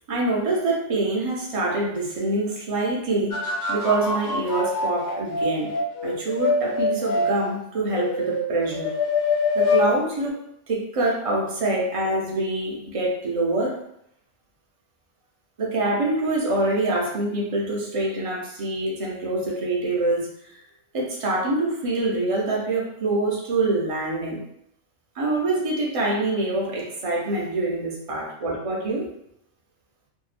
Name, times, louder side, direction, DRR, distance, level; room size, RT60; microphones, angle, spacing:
voice 1, 0.1-5.7 6.0-8.9 9.5-10.4 10.7-13.8 15.6-20.2 20.5-20.6 20.9-24.4 25.2-29.0, right 2 dB, 60° right, -3 dB, 0.3 m, -25 dB
sound 1, 3.3-7.4 7.9-9.9 10.3-10.4, left 3 dB, 70° left, 1.2 m, -25 dB
2.6 x 2.1 x 2.4 m, 0.74 s
omnidirectional pair, 1.3 m